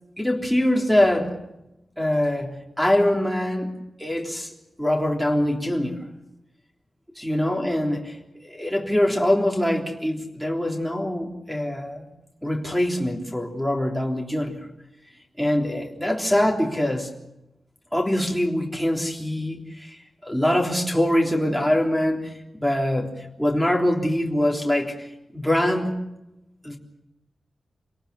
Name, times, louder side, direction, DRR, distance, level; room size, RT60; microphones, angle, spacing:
voice 1, 0.2-1.4 2.0-4.5 4.8-6.1 7.2-8.1 8.4-12.1 12.4-14.6 15.4-17.1 17.9-25.1 25.3-26.0 26.6-26.8, left 1 dB, ahead, 1 dB, 3.4 m, -23 dB
28.0 x 18.5 x 6.9 m, 0.90 s
wide cardioid pair, 165°, 0 cm